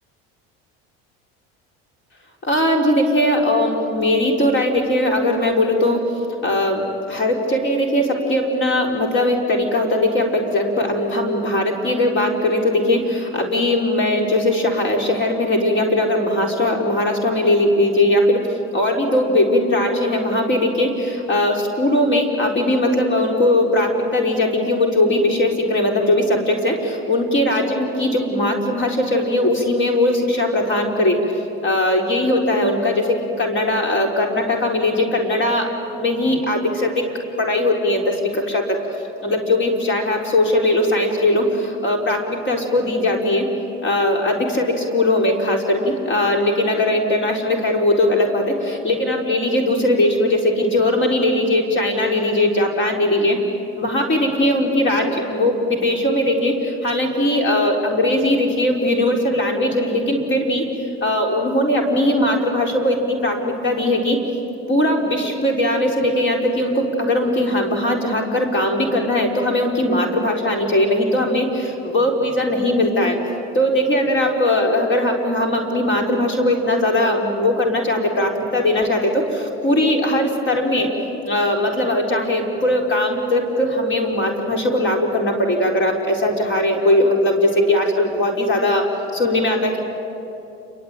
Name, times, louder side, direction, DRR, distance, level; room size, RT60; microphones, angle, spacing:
voice 1, 2.4-6.0 6.4-18.5 18.7-31.2 31.6-35.7 35.9-37.1 37.4-38.8 39.2-43.5 43.8-53.4 53.8-60.6 61.0-64.2 64.7-73.2 73.5-80.9 81.3-89.8, left 1 dB, 40° left, 2 dB, 4.4 m, -19 dB
28.5 x 23.0 x 9.1 m, 2.9 s
supercardioid pair, 90°, 30 cm